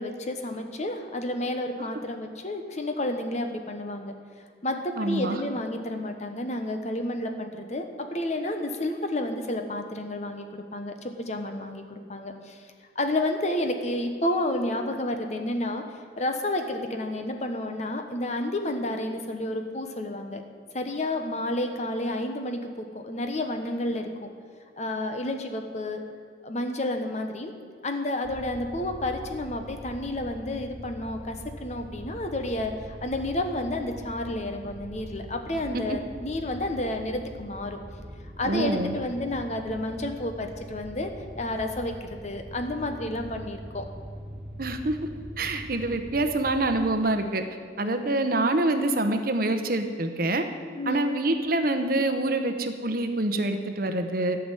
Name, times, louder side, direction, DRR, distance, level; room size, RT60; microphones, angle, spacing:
voice 1, 0.0-4.1 4.6-12.6 12.9-15.8 16.2-20.4 20.7-24.3 24.8-26.0 26.4-27.5 27.8-37.8 38.4-41.1 41.4-43.9 47.8-48.2 50.8-51.1, left 1 dB, 40° left, 5 dB, 1.1 m, -30 dB
voice 2, 5.0-5.4 35.7-36.0 38.4-38.9 44.6-45.0 45.4-47.4 47.8-50.4 50.9-54.4, right 2 dB, 50° right, 7 dB, 0.9 m, -26 dB
sound 1, 28.2-46.9, equal, 5° right, 1.7 m, -43 dB
12.5 x 6.0 x 9.0 m, 2.2 s
head